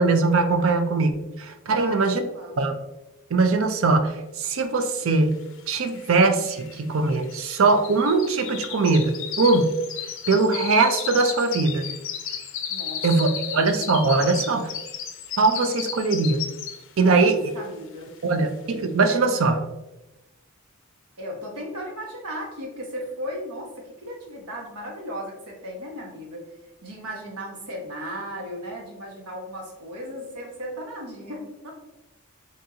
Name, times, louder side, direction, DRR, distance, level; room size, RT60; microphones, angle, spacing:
voice 1, 0.0-2.2 2.6-2.8 3.3-5.4 5.7-9.8 10.3-11.9 13.0-14.7 15.4-16.4 17.0-17.4 18.2-19.6, right 3 dB, 65° right, 8 dB, 0.5 m, -21 dB
voice 2, 1.7-2.6 12.7-13.0 17.0-18.1 21.2-26.5 26.8-31.7, equal, 90° right, -1 dB, 1.1 m, -36 dB
sound 1, 5.3-5.4 5.6-17.0 17.4-17.8 18.2-18.3, left 8 dB, 60° left, 0.4 m, -34 dB
3.9 x 3.6 x 2.8 m, 1.0 s
head